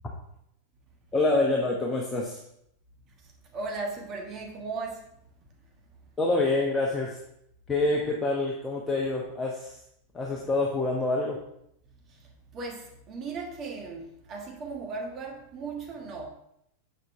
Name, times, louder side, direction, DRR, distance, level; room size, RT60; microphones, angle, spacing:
voice 1, 1.1-2.4 6.2-7.2 7.7-9.8 10.1-11.4, left 2 dB, 15° left, -2 dB, 1.1 m, -26 dB
voice 2, 3.5-5.0 12.5-16.3, right 3 dB, 30° right, 1 dB, 1.4 m, -36 dB
7.5 x 6.5 x 3.5 m, 0.76 s
figure-of-eight pair, 90°, 0 cm